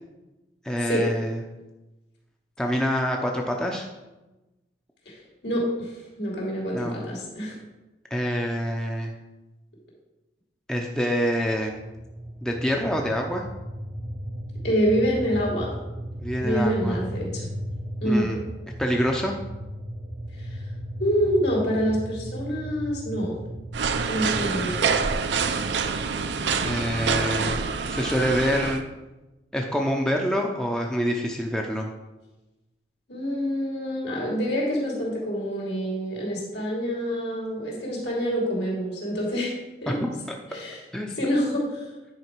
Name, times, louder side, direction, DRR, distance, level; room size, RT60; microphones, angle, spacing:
voice 1, 0.6-1.4 2.6-3.9 6.7-7.0 8.1-9.1 10.7-11.8 12.4-13.4 16.2-17.0 18.0-18.4 18.8-19.4 24.3-24.8 26.6-28.8 29.5-31.9 39.9-40.4 40.9-41.1, equal, 5° left, 1 dB, 0.6 m, -26 dB
voice 2, 5.4-7.5 14.6-15.7 16.4-17.5 18.0-18.4 20.4-20.6 21.0-23.3 24.0-24.9 33.1-39.5 39.8-40.0 40.5-40.8 41.2-41.8, equal, 70° left, -3 dB, 2.8 m, -26 dB
sound 1, 11.7-26.8, right 1 dB, 30° right, 0.7 m, -36 dB
sound 2, 23.7-28.8, right 5 dB, 80° right, 0.6 m, -26 dB
9.6 x 4.9 x 4.6 m, 1.1 s
head